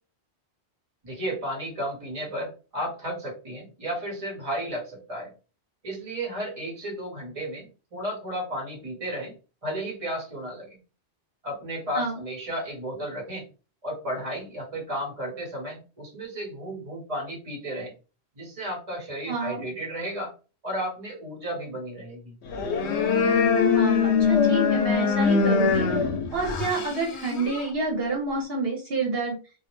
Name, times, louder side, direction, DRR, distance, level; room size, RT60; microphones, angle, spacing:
voice 1, 1.0-5.3 5.8-9.3 9.6-10.7 11.4-13.4 13.8-17.9 18.3-20.3 20.6-22.3, equal, 35° right, -1 dB, 1.0 m, -33 dB
voice 2, 19.3-19.6 23.7-25.9 26.3-29.4, right 3 dB, 65° right, -2 dB, 0.9 m, -28 dB
sound 1, 22.5-27.7, left 5 dB, 85° left, 0.9 m, -23 dB
2.4 x 2.0 x 3.1 m, 0.34 s
omnidirectional pair, 1.1 m